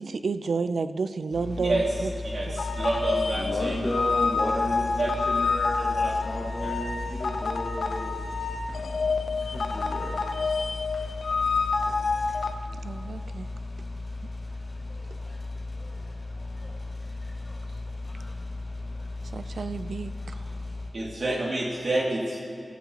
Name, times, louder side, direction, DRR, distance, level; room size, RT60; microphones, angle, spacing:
voice 1, 0.0-2.1 12.8-13.5 19.3-20.1, right 4 dB, 85° right, 12 dB, 0.4 m, -30 dB
sound 1, 1.3-20.9, left 2 dB, 60° left, 2.2 m, -36 dB
voice 2, 1.6-1.9 2.2-3.8 5.0-5.1 5.8-6.1 6.6-6.7 20.9-22.4, right 2 dB, 65° right, -3 dB, 2.7 m, -28 dB
sound 2, 2.6-12.5, left 4 dB, 90° left, 0.6 m, -28 dB
voice 3, 3.4-4.9 5.3-8.2 9.4-10.2 11.2-11.3 11.8-12.1 12.6-12.7 14.9-15.4 15.8-16.1 16.4-16.7 17.2-17.6 18.0-18.3 20.2-20.3, left 1 dB, 35° left, -5 dB, 1.8 m, -34 dB
16.5 x 14.5 x 3.0 m, 2.4 s
wide cardioid pair, 70°, 0 cm